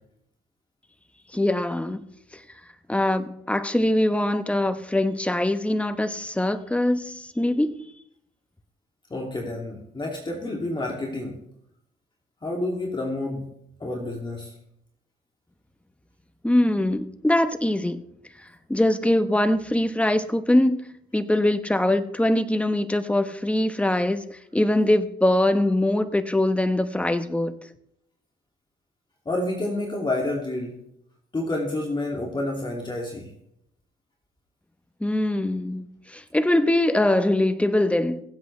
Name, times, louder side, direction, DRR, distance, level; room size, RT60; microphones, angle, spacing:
voice 1, 1.3-2.0 2.3-2.4 2.9-7.7 16.4-18.0 18.7-20.8 21.1-27.5 35.0-38.2, left 1 dB, 5° left, 1.0 m, -22 dB
voice 2, 9.1-11.4 12.4-13.4 13.8-14.5 29.3-30.8 31.3-33.3, left 2 dB, 25° left, 2.5 m, -29 dB
22.5 x 8.0 x 3.3 m
cardioid pair, 90°, 20 cm